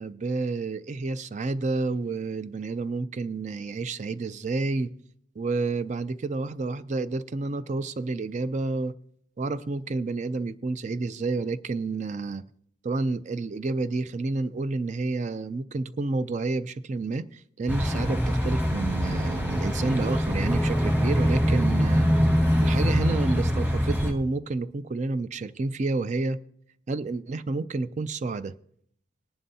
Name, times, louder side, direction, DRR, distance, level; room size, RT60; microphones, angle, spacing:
voice 1, 0.0-4.9 5.4-8.9 9.4-12.4 12.8-22.1 22.6-26.4 26.9-28.5, right 3 dB, 40° right, 0.4 m, -29 dB
sound 1, 17.7-24.1, equal, 10° right, 1.7 m, -23 dB
19.0 x 11.0 x 2.8 m
head